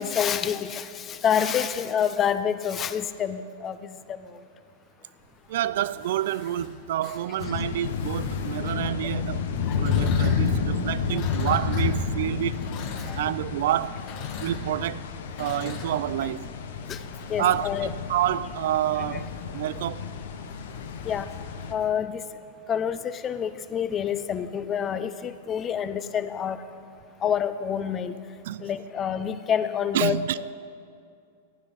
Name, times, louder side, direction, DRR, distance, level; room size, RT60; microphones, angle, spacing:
voice 1, 0.0-4.2 9.7-9.8 11.1-11.2 13.1-13.3 16.9-17.0 17.3-17.9 21.0-21.3 21.7-22.2 22.7-26.6 27.2-28.1 28.6-30.5, left 8 dB, 30° left, 0.6 m, -27 dB
sound 1, 5.4-9.0 9.5-21.9, left 5 dB, 50° left, 1.9 m, -43 dB
voice 2, 5.5-9.4 9.8-12.6 13.2-14.0 14.4-15.1 15.4-16.5 17.4-20.1 28.4-28.7 29.9-30.4, right 12 dB, 70° right, 0.4 m, -28 dB
sound 2, 7.4-21.7, left 6 dB, 75° left, 1.0 m, -30 dB
14.5 x 10.5 x 5.2 m
hypercardioid pair, 115°, 0 cm